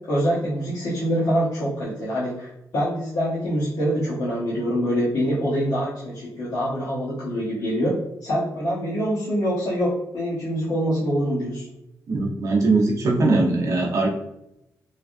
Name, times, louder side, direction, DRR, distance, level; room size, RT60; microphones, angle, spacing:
voice 1, 0.1-7.9 8.2-11.7, equal, 60° left, -8 dB, 0.8 m, -25 dB
voice 2, 12.1-14.1, right 3 dB, 50° right, -1 dB, 0.7 m, -20 dB
3.2 x 2.3 x 2.5 m, 0.83 s
wide cardioid pair, 140°, 7 cm